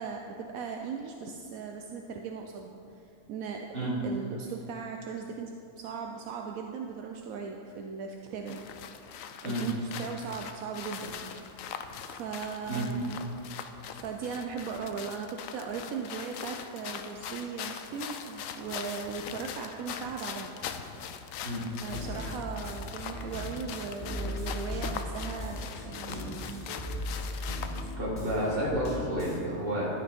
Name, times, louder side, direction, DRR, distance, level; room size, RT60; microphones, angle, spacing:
voice 1, 0.0-8.7 9.4-11.3 12.1-13.2 13.9-20.6 21.8-26.6, right 5 dB, 80° right, 3 dB, 1.0 m, -38 dB
sound 1, 8.5-27.9, left 7 dB, 75° left, 0.9 m, -41 dB
sound 2, 21.8-29.4, left 1 dB, 30° left, 1.8 m, -38 dB
voice 2, 28.0-29.9, equal, 40° right, -5 dB, 2.2 m, -30 dB
12.0 x 5.3 x 5.0 m, 2.7 s
omnidirectional pair, 1.5 m